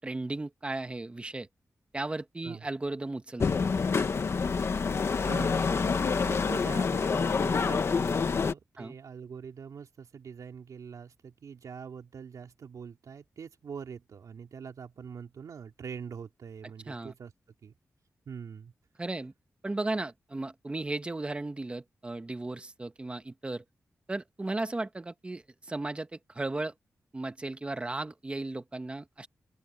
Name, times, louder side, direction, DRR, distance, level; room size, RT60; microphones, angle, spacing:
voice 1, 0.0-1.5 1.9-3.4 8.8-8.9 16.9-17.1 19.0-19.3 19.6-23.6 24.1-26.7 27.1-29.3, right 2 dB, 20° right, 1.2 m, -35 dB
sound 1, 3.4-8.5, left 5 dB, 50° left, 1.4 m, -27 dB
voice 2, 5.2-17.3 17.6-17.7 18.3-18.7, right 6 dB, 90° right, 2.9 m, -44 dB
open air
wide cardioid pair, 155°, 6 cm